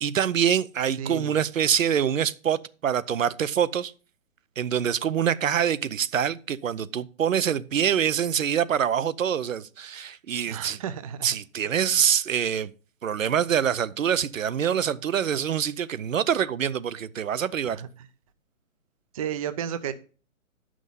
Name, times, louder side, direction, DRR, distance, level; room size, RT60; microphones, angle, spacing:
voice 1, 0.0-3.9 4.6-10.8 11.2-12.7 13.0-17.8, right 8 dB, 70° right, 0.7 m, -25 dB
voice 2, 1.0-1.3 10.5-11.3 17.7-17.9 19.1-19.9, right 9 dB, 25° right, 0.5 m, -32 dB
9.3 x 6.2 x 5.5 m
figure-of-eight pair, 130°, 40 cm